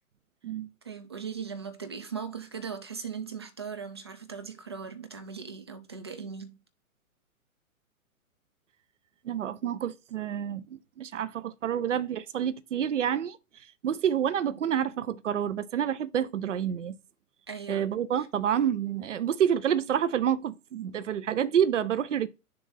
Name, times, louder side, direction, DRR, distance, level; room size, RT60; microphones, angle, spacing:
voice 1, 0.8-6.6 17.5-18.3, right 6 dB, 20° right, 0.3 m, -39 dB
voice 2, 9.2-13.4 13.8-17.0 17.7-22.3, right 9 dB, 60° right, 0.7 m, -28 dB
6.6 x 2.6 x 5.5 m
figure-of-eight pair, 115°, 43 cm